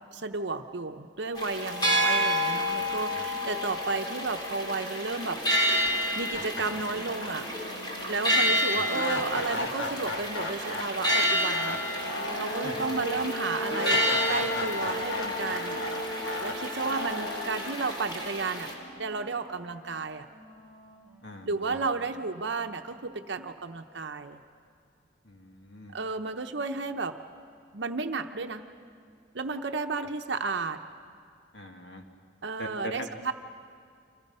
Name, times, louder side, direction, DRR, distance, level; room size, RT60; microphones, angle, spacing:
voice 1, 0.1-5.7 6.2-7.5 8.1-11.8 12.4-15.8 16.2-18.7 19.0-20.3 21.5-24.4 25.9-27.2 27.7-28.7 29.3-30.8 32.4-33.3, right 4 dB, 60° right, 7 dB, 0.8 m, -33 dB
sound 1, 1.4-18.7, equal, 20° left, 3.0 m, -30 dB
voice 2, 2.8-3.2 8.5-8.9 12.6-13.2 21.2-21.8 25.2-26.0 31.5-32.0 32.6-33.3, left 1 dB, 60° left, 3 dB, 2.2 m, -42 dB
sound 2, 5.8-5.9 6.3-19.4, left 1 dB, 80° left, 1.9 m, -35 dB
Wind instrument woodwind instrument, 10.8-22.9, equal, 5° left, 5.0 m, -52 dB
29.0 x 26.0 x 5.5 m, 2.2 s
head